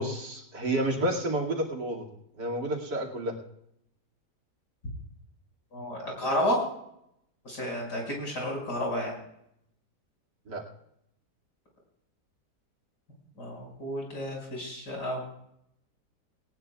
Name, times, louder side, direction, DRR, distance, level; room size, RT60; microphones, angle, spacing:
voice 1, 0.0-2.1 2.4-3.3 10.5-10.6, right 1 dB, 80° right, -1 dB, 3.1 m, -30 dB
voice 2, 5.7-6.6 7.4-9.1 13.4-15.2, equal, 70° left, -1 dB, 6.5 m, -31 dB
19.0 x 19.0 x 2.4 m, 0.76 s
omnidirectional pair, 1.8 m